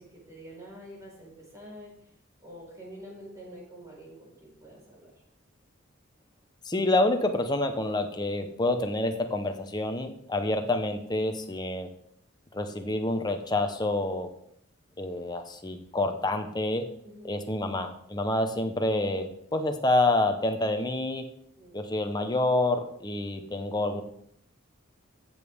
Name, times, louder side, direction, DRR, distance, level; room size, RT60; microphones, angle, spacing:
voice 1, 0.0-2.1 2.4-5.2 17.0-17.4 21.6-21.8, equal, 15° right, -4 dB, 4.6 m, -47 dB
voice 2, 6.6-11.9 12.5-14.3 15.0-16.8 17.2-21.2 21.7-24.0, left 2 dB, 20° left, 6 dB, 1.0 m, -28 dB
15.0 x 7.1 x 3.6 m, 0.68 s
head